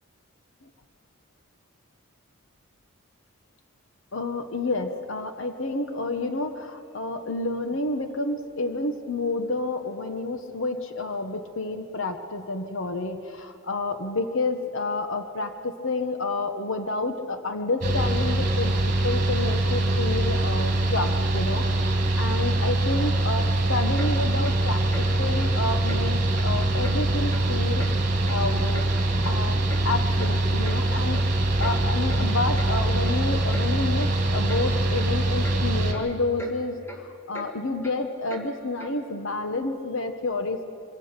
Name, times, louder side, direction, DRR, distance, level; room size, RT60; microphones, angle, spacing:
voice 1, 4.1-18.7 19.0-24.8 25.2-28.9 29.2-31.2 31.6-40.6, left 2 dB, 65° left, 7 dB, 1.1 m, -29 dB
Mechanical fan, 17.8-35.9, right 1 dB, 35° right, 2.1 m, -23 dB
Clock, 24.0-24.1 24.4-24.6 24.9-25.1 25.4-25.5 25.9-26.0 26.3-26.5 26.8-27.0 27.3-27.5 27.8-27.9 28.3-28.9 29.2-29.3 29.7-29.8 30.2-30.3 30.6-30.8 31.1-31.3 31.6-31.8 32.1-32.2 32.5-32.7 33.0-33.2 33.5-33.7 34.0-34.1 34.5-34.6 34.9-35.1 35.4-35.6 35.9-36.1 36.4-36.5 36.8-37.0 37.3-37.5 37.8-37.9 38.3-38.4 38.8-38.9, left 1 dB, 10° left, 1.9 m, -40 dB
23.0 x 17.5 x 6.7 m, 2.4 s
head